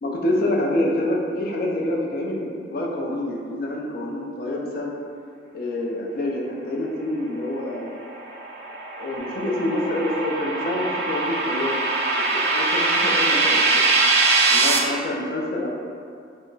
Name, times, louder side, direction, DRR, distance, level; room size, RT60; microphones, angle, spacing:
voice 1, 0.0-4.9 5.5-7.9 9.0-11.8 12.1-13.9 14.5-15.7, left 1 dB, 50° left, -1 dB, 0.3 m, -27 dB
sound 1, 8.0-14.8, right 3 dB, 55° right, 0.3 m, -22 dB
2.2 x 2.0 x 3.8 m, 2.3 s
head